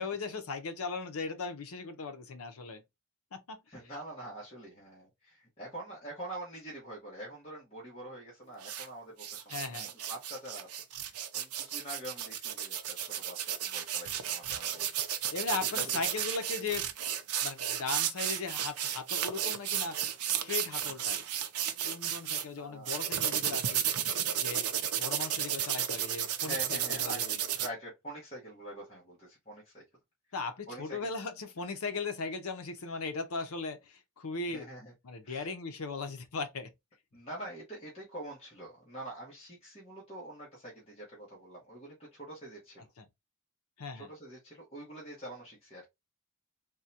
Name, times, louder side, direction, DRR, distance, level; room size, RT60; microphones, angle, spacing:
voice 1, 0.0-2.8 3.3-3.6 9.5-9.9 15.3-16.9 17.4-20.0 20.3-21.3 21.9-23.8 24.4-24.7 25.0-27.4 30.3-34.7 35.0-36.7 43.0-43.1 43.8-44.1, left 4 dB, 75° left, 0.6 m, -38 dB
voice 2, 3.7-9.8 10.1-14.9 15.2-15.4 15.7-16.1 22.5-22.9 26.4-27.2 27.5-29.8 30.7-31.1 34.5-34.9 35.2-35.5 37.1-42.9 43.9-45.9, right 1 dB, 25° left, 1.0 m, -45 dB
sound 1, 8.6-8.9 9.2-22.4 22.9-27.7, right 10 dB, 90° right, 0.5 m, -33 dB
3.6 x 2.2 x 2.7 m
head